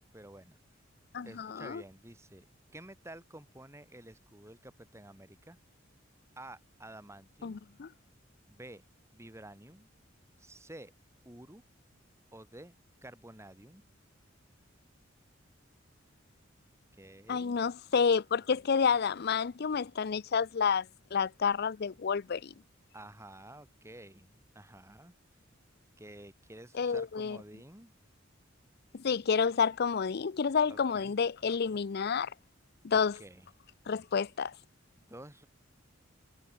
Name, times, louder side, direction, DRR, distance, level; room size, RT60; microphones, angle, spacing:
voice 1, 0.1-0.6 1.2-2.5 2.7-5.6 6.4-7.6 8.5-8.8 9.1-9.9 10.4-10.9 11.3-11.6 12.3-12.7 13.0-13.8 17.0-17.6 22.9-25.1 26.0-27.9 30.7-31.1 32.9-33.5 35.0-35.5, right 1 dB, 15° right, 3.9 m, -51 dB
voice 2, 1.1-1.8 7.4-7.9 17.3-20.9 21.1-22.5 26.8-27.4 28.9-32.3 32.8-33.2 33.9-34.5, left 6 dB, 55° left, 0.5 m, -29 dB
head